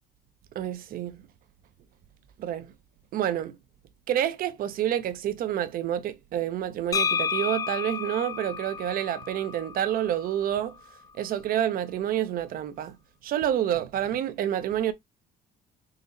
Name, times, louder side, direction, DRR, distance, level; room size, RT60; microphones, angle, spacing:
voice 1, 0.6-1.2 2.4-2.7 3.1-3.6 4.1-10.7 11.2-13.0 13.2-14.9, right 11 dB, 60° right, 0.6 m, -28 dB
sound 1, 6.9-10.7, left 6 dB, 20° left, 0.4 m, -31 dB
3.9 x 2.0 x 3.9 m
cardioid pair, 110°, 17 cm